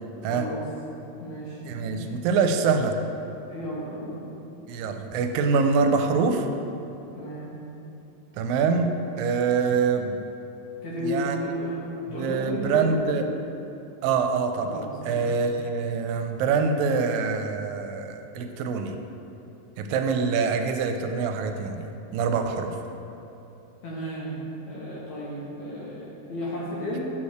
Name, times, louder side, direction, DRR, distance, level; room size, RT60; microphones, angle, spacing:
voice 1, 0.2-0.6 1.2-2.0 3.5-4.4 7.1-7.6 10.8-13.0 14.6-15.3 23.8-27.1, equal, 65° left, -6 dB, 2.2 m, -33 dB
voice 2, 1.6-3.0 4.7-6.5 8.4-8.9 9.2-10.2 11.0-11.4 12.2-13.2 14.0-19.0 19.8-21.9 22.1-22.8, right 5 dB, 80° right, 5 dB, 2.2 m, -25 dB
7.3 x 4.2 x 6.5 m, 3.0 s
omnidirectional pair, 4.1 m